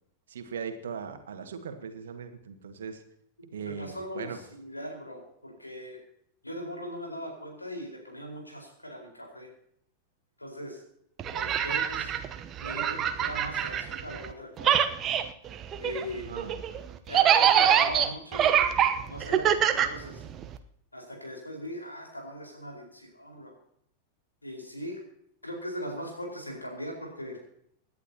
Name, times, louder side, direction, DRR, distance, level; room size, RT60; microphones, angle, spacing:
voice 1, 0.3-3.0 3.5-4.4 16.2-16.6, right 6 dB, 65° right, 7 dB, 1.7 m, -39 dB
voice 2, 3.6-4.3 4.6-6.0 6.4-9.5 10.4-10.8 11.3-12.1 12.6-14.9 15.8-16.3 17.1-18.6 19.1-20.2 20.9-23.5 24.4-25.0 25.4-27.4, equal, 85° left, 0 dB, 4.6 m, -39 dB
sound 1, 11.2-14.3 14.6-20.6, right 9 dB, 30° right, 0.9 m, -25 dB
26.5 x 11.0 x 2.9 m, 0.71 s
figure-of-eight pair, 90°, 0 cm